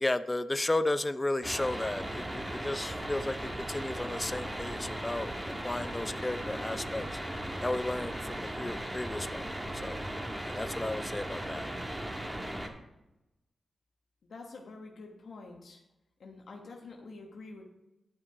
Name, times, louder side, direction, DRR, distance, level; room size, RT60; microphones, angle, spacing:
voice 1, 0.0-5.3 5.6-7.2 7.6-9.5 9.8-10.0 10.4-11.7, left 2 dB, 25° left, 12 dB, 0.5 m, -33 dB
sound 1, 1.4-12.7, right 1 dB, 20° right, 1.8 m, -37 dB
voice 2, 14.3-15.8 16.2-17.6, left 3 dB, 75° left, 1 dB, 1.3 m, -47 dB
11.0 x 5.7 x 4.7 m, 0.94 s
cardioid pair, 45°, 0 cm